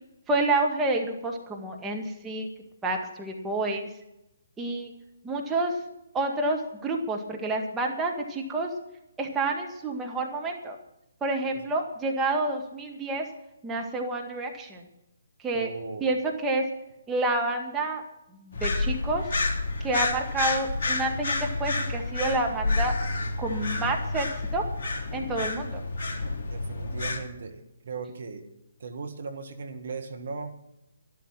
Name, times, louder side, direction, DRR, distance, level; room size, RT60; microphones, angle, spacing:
voice 1, 0.3-2.5 2.8-3.9 4.6-4.9 5.2-5.7 6.1-8.7 9.2-10.8 11.2-13.2 13.6-14.8 15.4-15.7 16.0-16.6 17.1-18.0 18.3-19.2 19.8-22.9 23.4-24.3 24.5-24.6 25.1-25.8, right 2 dB, 10° right, 0 dB, 1.8 m, -28 dB
voice 2, 15.5-16.0 26.5-28.4 28.8-30.5, right 4 dB, 55° right, 6 dB, 1.8 m, -37 dB
sound 1, 18.5-27.2, left 2 dB, 40° left, 3.2 m, -29 dB
12.5 x 12.5 x 6.1 m, 0.88 s
figure-of-eight pair, 135°, 0 cm